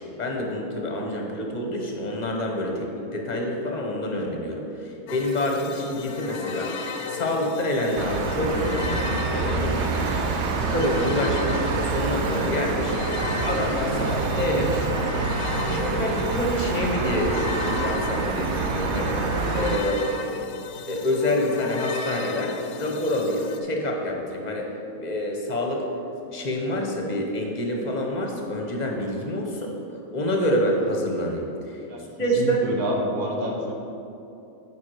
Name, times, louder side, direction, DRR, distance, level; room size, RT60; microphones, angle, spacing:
voice 1, 0.0-6.7 7.1-10.2 10.5-13.0 13.4-14.9 15.2-19.2 19.5-20.1 20.9-24.7 25.0-25.9 26.3-29.7 30.1-31.8 32.2-32.6, left 1 dB, 30° left, 0 dB, 1.0 m, -27 dB
sound 1, 5.1-23.6, left 5 dB, 80° left, 1.1 m, -34 dB
sound 2, 8.0-19.8, right 4 dB, 60° right, 0.8 m, -27 dB
voice 2, 32.4-33.7, right 1 dB, 80° right, -1 dB, 1.4 m, -28 dB
9.1 x 5.1 x 4.8 m, 2.8 s
omnidirectional pair, 1.6 m